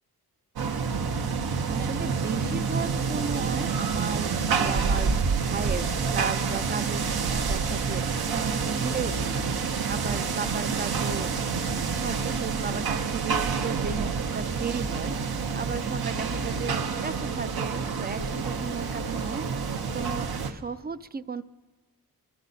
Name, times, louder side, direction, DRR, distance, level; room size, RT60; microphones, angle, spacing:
sound 1, 0.6-20.5, right 5 dB, 70° right, 1.0 m, -28 dB
voice 1, 1.7-8.0 8.3-11.3 12.0-21.4, right 5 dB, 25° right, 14 dB, 0.4 m, -35 dB
25.5 x 12.0 x 4.1 m, 1.3 s
wide cardioid pair, 115°, 38 cm